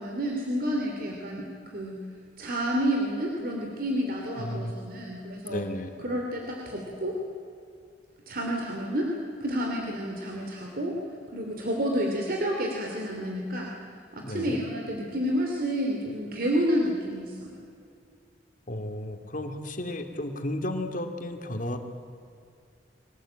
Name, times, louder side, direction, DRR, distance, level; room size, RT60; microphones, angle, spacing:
voice 1, 0.0-2.0 2.4-5.6 6.0-7.2 8.3-9.1 9.4-11.0 11.3-13.7 14.1-17.6, equal, 55° right, 0 dB, 2.9 m, -30 dB
voice 2, 4.4-4.7 5.5-6.1 14.2-14.6 18.7-21.8, left 1 dB, 50° left, 6 dB, 2.3 m, -33 dB
23.5 x 18.0 x 8.8 m, 2.4 s
head